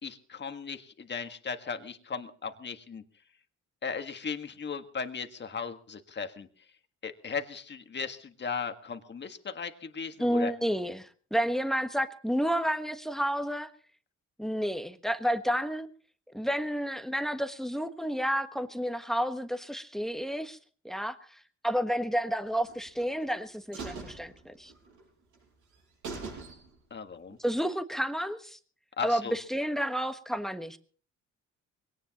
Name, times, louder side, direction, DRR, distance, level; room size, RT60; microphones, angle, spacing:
voice 1, 0.0-3.0 3.8-6.5 7.0-10.5 26.9-27.4 29.0-29.4, left 5 dB, 35° left, 7 dB, 1.7 m, -37 dB
voice 2, 10.2-13.7 14.4-15.9 16.3-20.6 20.8-21.4 21.6-24.7 27.4-28.6 29.0-30.8, equal, ahead, 9 dB, 1.3 m, -30 dB
sound 1, 22.6-23.3 23.7-25.0 25.3-25.4 25.7-25.8 26.0-26.9 27.3-27.4, right 4 dB, 75° right, 7.7 m, -42 dB
22.0 x 18.0 x 3.0 m, 0.42 s
cardioid pair, 90°, 30 cm